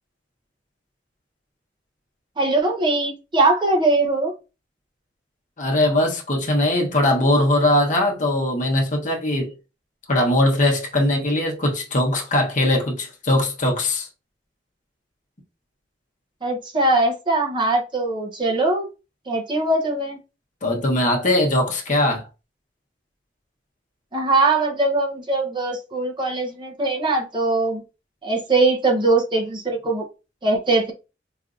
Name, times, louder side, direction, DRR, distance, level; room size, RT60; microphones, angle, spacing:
voice 1, 2.4-4.3 16.4-18.9 19.3-20.2 24.1-27.8 28.2-30.0 30.4-30.9, right 2 dB, 25° right, 0.8 m, -21 dB
voice 2, 5.6-9.5 10.1-14.1 20.6-22.2, left 1 dB, 45° left, 1.0 m, -20 dB
4.9 x 2.6 x 2.5 m
head